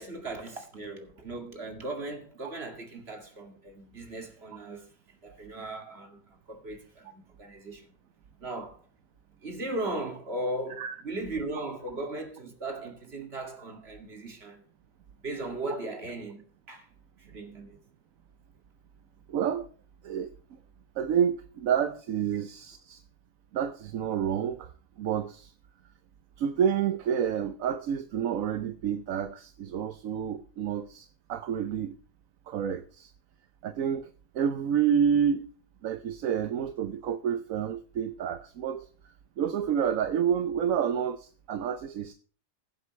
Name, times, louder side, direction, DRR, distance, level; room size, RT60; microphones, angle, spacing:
voice 1, 0.0-7.9 8.4-8.8 9.4-14.6 15.2-16.4 16.7-16.9 17.2-17.8, right 2 dB, 35° right, 2.5 m, -37 dB
voice 2, 19.3-19.7 20.0-20.4 21.0-23.0 23.5-24.7 25.0-25.5 26.4-31.9 32.5-33.1 33.6-35.5 35.8-38.9 39.4-42.1, right 8 dB, 60° right, 1.0 m, -29 dB
21.0 x 7.9 x 3.2 m
omnidirectional pair, 1.9 m